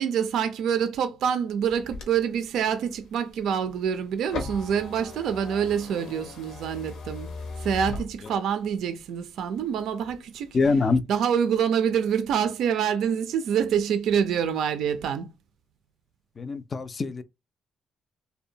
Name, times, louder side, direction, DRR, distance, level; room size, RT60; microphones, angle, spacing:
voice 1, 0.0-7.3 7.6-10.5 11.1-15.3, right 8 dB, 80° right, 0.3 m, -26 dB
sound 1, 1.6-8.7 9.2-10.1 10.5-11.0, left 3 dB, 85° left, 0.8 m, -39 dB
voice 2, 10.5-11.0 16.4-17.2, left 4 dB, 35° left, 0.3 m, -24 dB
2.7 x 2.1 x 2.7 m
cardioid pair, 90°, 0 cm